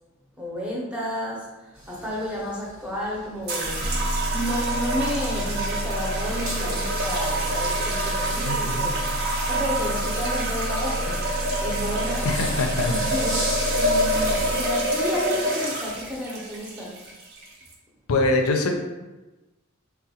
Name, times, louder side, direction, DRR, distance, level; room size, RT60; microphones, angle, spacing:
voice 1, 0.4-4.0 4.3-9.0 9.5-12.3 12.9-13.5 13.8-17.0, equal, 5° right, -4 dB, 0.6 m, -31 dB
sound 1, 1.7-16.2, right 1 dB, 65° right, 0.9 m, -39 dB
sound 2, 3.5-17.7, right 1 dB, 50° right, 0.6 m, -27 dB
sound 3, 3.6-15.3, equal, 25° left, 0.8 m, -31 dB
voice 2, 8.4-8.9 12.2-12.9 18.1-18.7, left 2 dB, 90° left, 3 dB, 0.5 m, -23 dB
3.7 x 2.2 x 2.8 m, 1.1 s
head